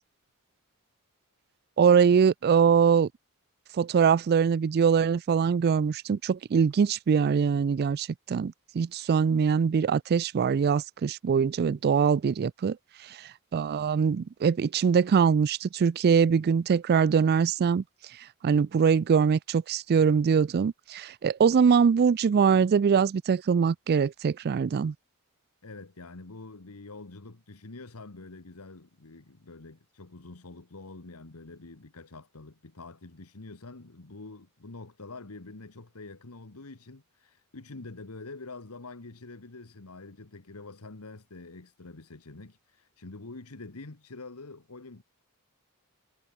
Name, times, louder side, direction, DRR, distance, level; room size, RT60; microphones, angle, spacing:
voice 1, 1.8-3.1 3.7-12.8 13.0-17.8 18.4-24.9, right 6 dB, 45° right, 0.3 m, -23 dB
voice 2, 25.6-45.0, left 3 dB, 90° left, 1.5 m, -46 dB
head